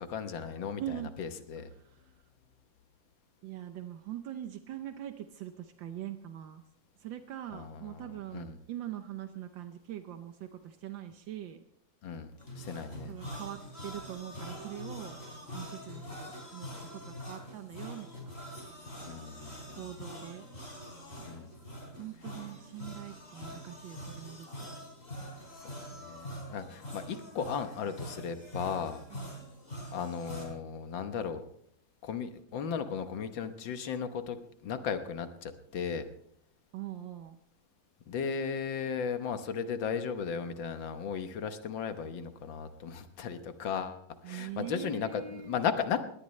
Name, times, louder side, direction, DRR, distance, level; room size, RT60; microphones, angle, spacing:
voice 1, 0.0-1.7 7.5-8.1 8.3-8.6 12.0-12.3 12.6-13.1 19.0-19.8 21.3-21.5 25.6-25.7 26.1-29.0 29.9-31.4 32.0-36.0 38.1-46.0, left 6 dB, 80° left, 9 dB, 1.9 m, -36 dB
voice 2, 0.8-1.1 1.7-2.1 3.4-6.6 7.0-11.6 13.1-15.2 15.5-18.3 19.7-20.5 22.0-24.7 29.1-29.5 36.7-37.4 44.2-45.6, right 12 dB, 80° right, 8 dB, 1.5 m, -42 dB
sound 1, 12.4-30.5, equal, 30° left, 3.9 m, -44 dB
20.5 x 17.5 x 3.2 m, 0.68 s
omnidirectional pair, 2.1 m